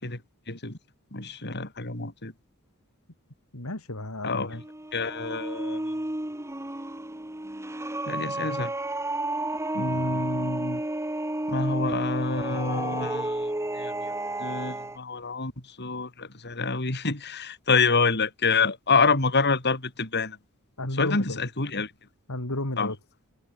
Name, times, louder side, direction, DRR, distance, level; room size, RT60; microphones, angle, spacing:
voice 1, 0.5-0.8 1.1-2.3 4.2-4.5 4.9-6.0 8.1-8.7 9.7-10.8 11.5-14.1 14.4-20.4 21.0-21.9 22.8-22.9, left 4 dB, 50° left, 4.7 m, -27 dB
voice 2, 3.5-4.6 9.7-10.5 20.8-21.4 22.3-23.0, left 1 dB, 70° left, 3.9 m, -33 dB
sound 1, 4.4-15.0, right 1 dB, 15° right, 1.5 m, -32 dB
head